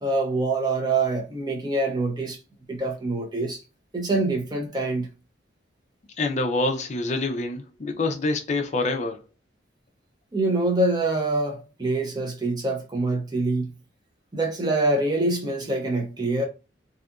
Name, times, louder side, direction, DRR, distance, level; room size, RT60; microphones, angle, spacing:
voice 1, 0.0-2.4 2.7-3.6 3.9-5.1 10.3-13.7 14.3-16.4, right 2 dB, 20° right, 0.5 m, -25 dB
voice 2, 6.2-9.2, left 2 dB, 35° left, 0.4 m, -26 dB
2.7 x 2.4 x 2.3 m
head